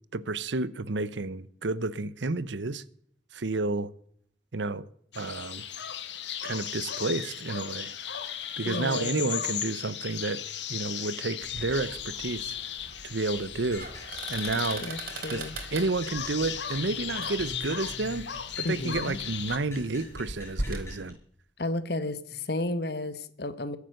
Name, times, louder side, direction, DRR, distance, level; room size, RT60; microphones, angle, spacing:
voice 1, 0.1-2.8 3.3-3.9 4.5-4.8 5.1-5.6 6.4-7.9 8.6-10.4 10.7-12.6 13.0-13.9 14.3-14.9 15.3-15.4 15.7-18.3 18.6-21.2, right 3 dB, 90° right, 0.9 m, -30 dB
sound 1, 5.1-19.6, left 9 dB, 80° left, 1.6 m, -36 dB
voice 2, 8.6-9.3 14.8-15.6 18.6-19.2 21.6-23.8, left 2 dB, 60° left, 1.3 m, -33 dB
sound 2, 11.4-20.9, right 2 dB, 50° right, 3.5 m, -41 dB
sound 3, 13.7-21.1, left 2 dB, 15° left, 6.5 m, -48 dB
22.5 x 8.3 x 6.7 m
head